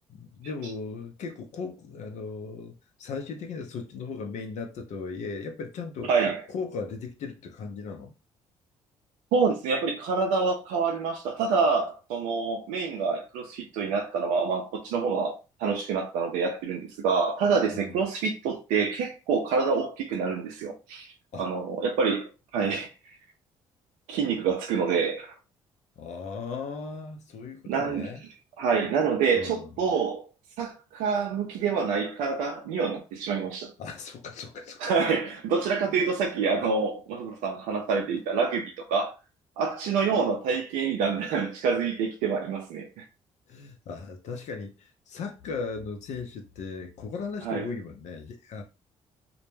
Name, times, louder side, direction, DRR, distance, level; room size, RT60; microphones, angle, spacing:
voice 1, 0.1-6.1 6.5-8.1 17.8-17.9 21.3-21.5 26.0-28.2 29.3-29.7 33.8-34.8 35.9-36.0 43.5-48.6, left 4 dB, 65° left, 0.5 m, -37 dB
voice 2, 6.1-6.4 9.3-21.1 21.4-22.9 24.1-25.3 27.7-28.1 28.6-30.3 30.6-33.7 34.8-39.1 39.6-43.0 47.4-47.6, right 5 dB, 80° right, 0.4 m, -27 dB
2.1 x 2.1 x 3.0 m
supercardioid pair, 65°, 13 cm